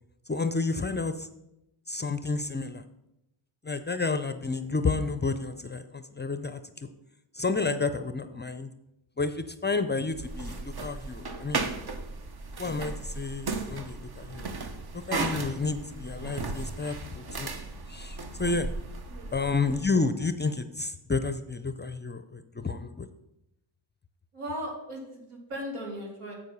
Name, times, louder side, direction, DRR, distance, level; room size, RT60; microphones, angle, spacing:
voice 1, 0.3-1.3 1.9-2.8 3.6-6.9 7.3-8.7 9.2-11.7 12.6-14.5 15.1-17.5 17.9-18.7 19.3-23.1, left 4 dB, 20° left, 10 dB, 0.5 m, -30 dB
sound 1, 10.1-19.8, right 3 dB, 50° right, 1.1 m, -36 dB
voice 2, 24.3-26.3, equal, 80° right, -1 dB, 2.7 m, -37 dB
7.4 x 6.5 x 5.4 m, 0.90 s
cardioid pair, 65°, 50 cm